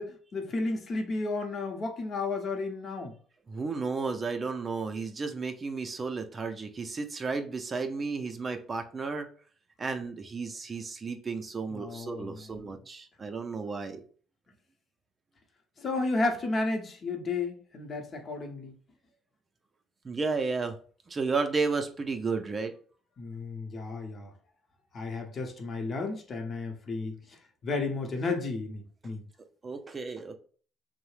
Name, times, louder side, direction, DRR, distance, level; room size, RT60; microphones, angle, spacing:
voice 1, 0.0-3.1 11.7-12.7 15.8-18.8 23.2-24.3 24.9-27.2 27.6-29.2, left 3 dB, 45° left, 0.7 m, -33 dB
voice 2, 3.5-9.3 9.8-14.0 20.0-20.8 21.1-22.7 29.6-30.4, right 4 dB, 35° right, 0.4 m, -33 dB
2.7 x 2.0 x 3.1 m
supercardioid pair, 85°, 0 cm